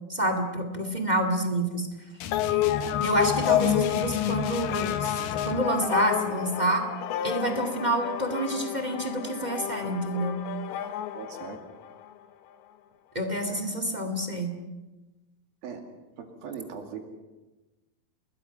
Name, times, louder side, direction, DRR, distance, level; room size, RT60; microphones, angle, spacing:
voice 1, 0.1-1.9 3.0-6.8 7.2-10.3 13.1-14.5, right 1 dB, 20° right, 6 dB, 1.4 m, -28 dB
sound 1, 2.2-5.7, left 8 dB, 70° left, 2.6 m, -35 dB
sound 2, 2.3-12.1, left 11 dB, 85° left, 3.0 m, -30 dB
voice 2, 11.1-11.6 15.6-15.8 16.2-17.0, right 7 dB, 70° right, 4 dB, 4.0 m, -39 dB
29.0 x 21.0 x 5.9 m, 1.1 s
omnidirectional pair, 4.4 m